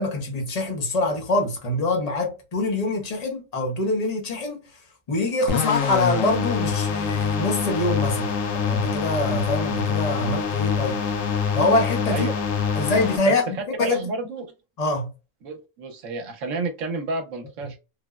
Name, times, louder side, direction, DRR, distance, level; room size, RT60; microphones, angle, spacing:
voice 1, 0.0-4.6 5.1-11.0 11.5-12.3 12.8-14.0 14.8-15.1, left 2 dB, 35° left, 0.8 m, -25 dB
sound 1, 5.5-13.2, left 6 dB, 80° left, 1.0 m, -25 dB
voice 2, 13.8-14.5 15.4-17.8, right 3 dB, 75° right, 1.0 m, -30 dB
3.3 x 2.0 x 2.3 m
omnidirectional pair, 1.3 m